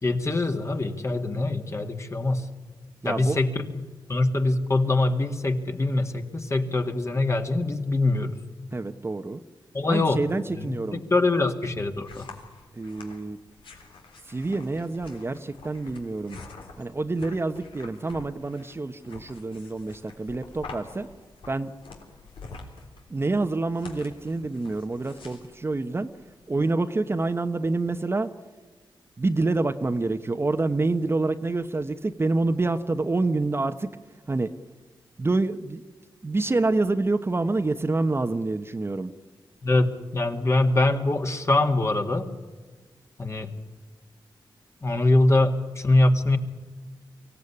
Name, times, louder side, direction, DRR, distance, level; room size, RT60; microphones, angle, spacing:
voice 1, 0.0-2.5 3.0-3.7 4.1-8.4 9.7-10.2 10.5-12.3 39.6-42.3 43.2-43.5 44.8-46.4, left 2 dB, 35° left, 5 dB, 2.1 m, -23 dB
voice 2, 3.0-3.4 8.7-9.4 9.9-11.0 12.8-13.4 14.3-16.4 16.8-21.1 21.5-21.7 23.1-26.1 26.5-28.3 29.2-33.9 34.3-34.5 35.2-35.8 36.2-39.1, right 3 dB, 30° right, 9 dB, 1.0 m, -27 dB
sound 1, 11.4-26.6, left 4 dB, 90° left, 3.5 m, -47 dB
24.0 x 16.5 x 9.9 m, 1.4 s
wide cardioid pair, 90°, 8 cm